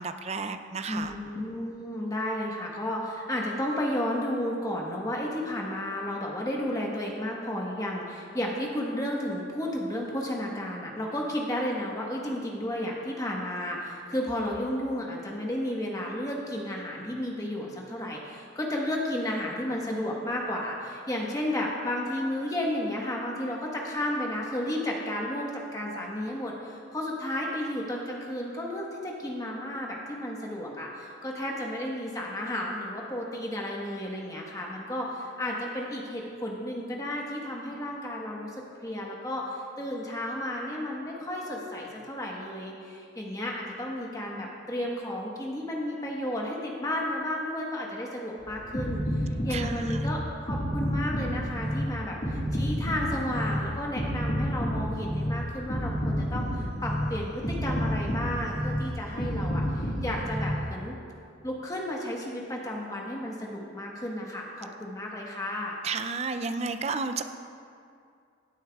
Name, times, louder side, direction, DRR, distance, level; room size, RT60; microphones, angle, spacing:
voice 1, 0.0-1.1 49.5-50.1 65.8-67.2, right 4 dB, 35° right, 9 dB, 0.4 m, -32 dB
voice 2, 0.9-60.9 61.4-65.8, left 1 dB, 20° left, -2 dB, 1.2 m, -33 dB
sound 1, 48.4-60.7, equal, 45° left, 1.8 m, -30 dB
16.0 x 8.9 x 2.3 m, 2.4 s
head